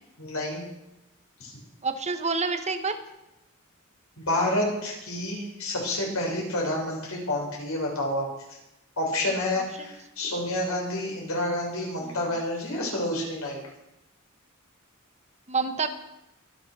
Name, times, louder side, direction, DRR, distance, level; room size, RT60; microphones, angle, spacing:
voice 1, 0.2-0.6 1.4-1.5 4.2-8.2 9.0-13.6, left 1 dB, 85° left, -2 dB, 6.2 m, -29 dB
voice 2, 1.8-3.0 9.2-9.9 12.0-12.2 15.5-15.9, right 4 dB, 30° right, 7 dB, 1.3 m, -29 dB
24.0 x 8.3 x 6.4 m, 0.89 s
head